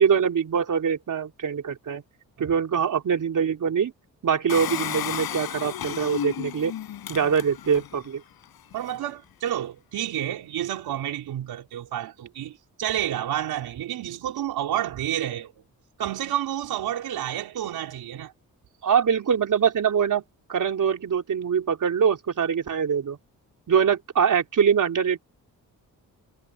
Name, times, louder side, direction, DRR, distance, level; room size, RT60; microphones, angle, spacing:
voice 1, 0.0-2.0 2.4-3.9 4.2-6.7 7.1-8.2 18.8-20.2 20.5-23.2 23.7-25.2, right 7 dB, 60° right, 3.7 m, -23 dB
Engine, 4.5-8.0 8.4-8.5 8.7-8.8, left 11 dB, 85° left, 7.1 m, -33 dB
voice 2, 8.7-15.5 16.0-18.3, right 11 dB, 85° right, 4.2 m, -30 dB
cardioid pair, 85°, 36 cm